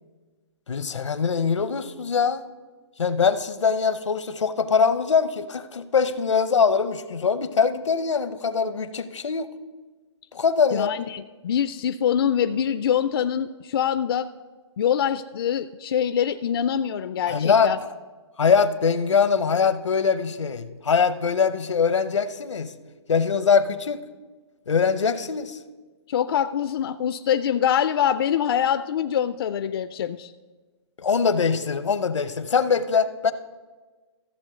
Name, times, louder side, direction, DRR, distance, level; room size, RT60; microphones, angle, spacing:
voice 1, 0.7-2.4 3.0-9.5 10.3-10.9 17.3-17.7 18.4-22.7 23.1-24.0 24.7-25.6 31.0-33.3, left 6 dB, 85° left, 13 dB, 0.7 m, -22 dB
voice 2, 10.7-14.3 14.8-17.8 26.1-30.3, left 9 dB, 55° left, 12 dB, 0.4 m, -24 dB
14.0 x 7.2 x 3.7 m, 1.4 s
hypercardioid pair, 140°, 15 cm